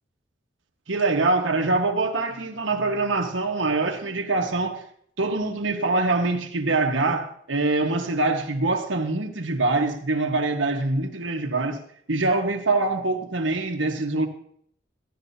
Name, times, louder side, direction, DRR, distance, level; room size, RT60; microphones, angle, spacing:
voice 1, 0.9-4.8 5.2-11.8 12.1-14.3, right 2 dB, 90° right, 1.4 m, -24 dB
15.5 x 11.5 x 2.8 m
head